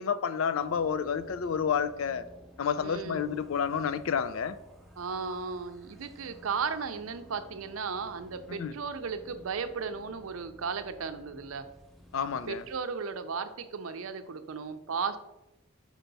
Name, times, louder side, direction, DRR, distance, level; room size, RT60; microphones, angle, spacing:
voice 1, 0.0-2.2 2.6-4.6 8.5-8.7 12.1-12.6, left 7 dB, 75° left, 0.4 m, -30 dB
sound 1, 0.6-12.8, equal, ahead, 0.6 m, -54 dB
voice 2, 2.8-3.3 5.0-11.7 12.5-15.2, right 5 dB, 85° right, 0.5 m, -35 dB
5.6 x 4.5 x 4.0 m
head